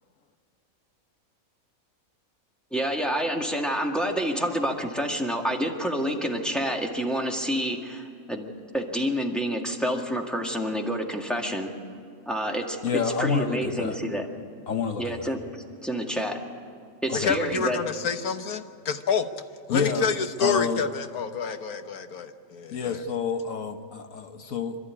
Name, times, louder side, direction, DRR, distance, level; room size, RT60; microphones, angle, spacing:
voice 1, 2.7-11.7 12.3-14.3 15.0-15.4 15.8-16.4 17.0-17.8, equal, ahead, 0 dB, 1.8 m, -28 dB
voice 2, 12.8-14.0 14.7-15.3 17.1-17.3 19.7-20.1 20.4-20.8 22.7-24.8, left 6 dB, 65° left, 7 dB, 1.4 m, -28 dB
voice 3, 17.2-19.3 19.7-23.0, left 5 dB, 85° left, 8 dB, 1.6 m, -28 dB
27.0 x 12.5 x 9.8 m, 2.4 s
omnidirectional pair, 1.5 m